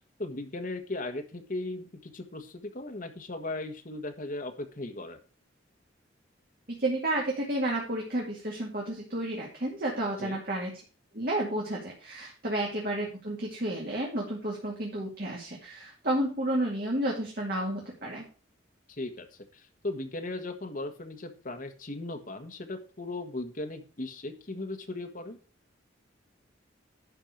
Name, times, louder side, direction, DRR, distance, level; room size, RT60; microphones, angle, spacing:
voice 1, 0.2-5.2 10.2-10.4 18.9-19.3 19.5-25.4, left 2 dB, 45° left, 6 dB, 1.4 m, -37 dB
voice 2, 6.7-10.7 11.1-18.2, right 1 dB, 55° right, -2 dB, 2.3 m, -31 dB
11.0 x 4.5 x 6.6 m, 0.39 s
head